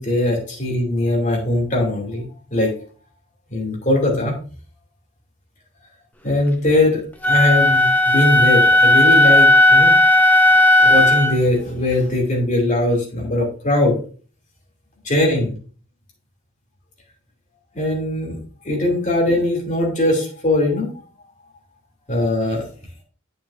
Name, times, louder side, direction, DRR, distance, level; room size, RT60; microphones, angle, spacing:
voice 1, 0.0-2.3 2.5-2.7 3.5-4.3 6.2-7.0 7.3-9.9 10.8-14.0 15.0-15.5 17.7-18.4 18.6-20.9 22.1-22.6, left 1 dB, 35° left, -1 dB, 2.7 m, -20 dB
Wind instrument woodwind instrument, 7.2-11.4, left 1 dB, 10° left, 0.6 m, -13 dB
9.0 x 6.8 x 2.6 m, 0.40 s
head